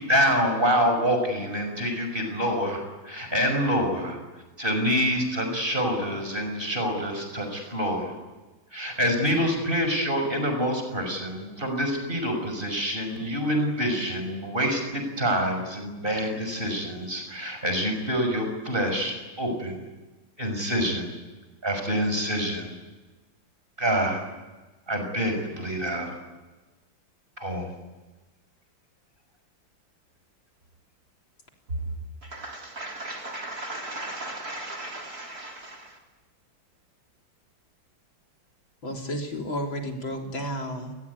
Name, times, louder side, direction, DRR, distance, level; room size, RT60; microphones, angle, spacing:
voice 1, 0.1-4.2 4.6-8.1 8.7-19.8 20.4-21.1 21.6-22.7 23.8-24.2 24.9-26.1 27.4-27.7, equal, 25° right, 5 dB, 6.3 m, -26 dB
voice 2, 32.3-35.9, right 2 dB, 45° right, 1 dB, 4.3 m, -36 dB
voice 3, 38.8-40.9, equal, 70° left, 2 dB, 4.4 m, -32 dB
27.5 x 21.0 x 9.8 m, 1.2 s
omnidirectional pair, 2.2 m